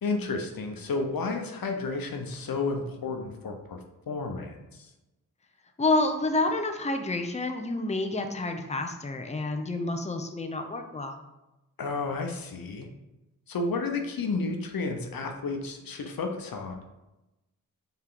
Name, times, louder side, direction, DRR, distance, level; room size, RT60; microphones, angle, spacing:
voice 1, 0.0-3.8 4.1-4.9 11.8-12.9 13.5-16.8, left 3 dB, 75° left, 4 dB, 0.9 m, -32 dB
voice 2, 5.8-11.2, left 2 dB, 20° left, 5 dB, 0.7 m, -29 dB
5.5 x 4.5 x 3.9 m, 0.98 s
cardioid pair, 50°, 36 cm